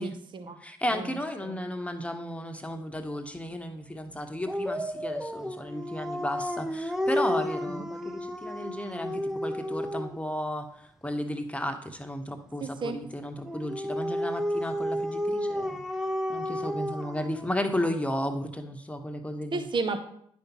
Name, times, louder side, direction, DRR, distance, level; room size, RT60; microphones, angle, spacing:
voice 1, 0.0-0.6 0.9-1.0 1.5-1.6 12.6-13.0 19.5-20.0, right 3 dB, 45° right, 7 dB, 0.9 m, -32 dB
voice 2, 0.6-15.8 16.3-19.7, left 1 dB, 10° left, 6 dB, 1.1 m, -34 dB
Dog, 4.5-10.3 13.5-18.0, equal, 5° right, 0.7 m, -32 dB
10.0 x 5.2 x 3.0 m, 0.68 s
hypercardioid pair, 45°, 12 cm